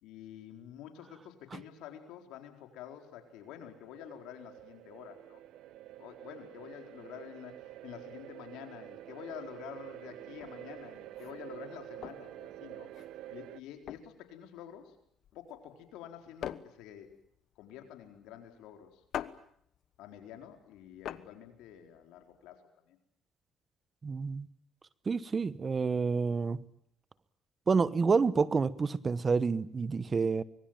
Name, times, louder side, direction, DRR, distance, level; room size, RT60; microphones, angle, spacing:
voice 1, 0.0-5.4 6.0-12.9 13.3-14.9 15.3-17.1 17.6-19.0 20.0-23.0, left 10 dB, 85° left, 4.3 m, -48 dB
sound 1, 2.9-13.6, right 13 dB, 75° right, 1.1 m, -48 dB
sound 2, 10.3-22.6, left 10 dB, 65° left, 1.1 m, -46 dB
voice 2, 24.0-24.5 25.1-26.6 27.7-30.4, right 5 dB, 35° right, 1.1 m, -28 dB
25.0 x 22.5 x 8.9 m
cardioid pair, 85°, 0 cm